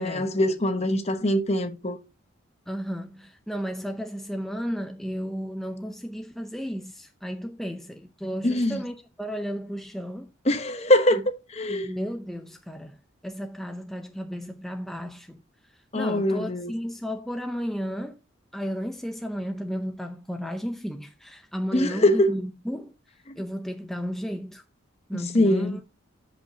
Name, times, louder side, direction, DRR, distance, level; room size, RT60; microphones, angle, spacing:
voice 1, 0.0-2.0 8.4-8.8 10.5-11.2 11.5-11.9 15.9-16.7 21.7-22.3 23.3-23.4 25.1-25.8, left 1 dB, 30° left, 1.0 m, -23 dB
voice 2, 2.7-10.3 11.7-15.4 15.7-18.2 18.5-22.9 23.4-24.6 25.1-25.8, equal, ahead, 0.6 m, -33 dB
14.0 x 5.3 x 2.7 m
head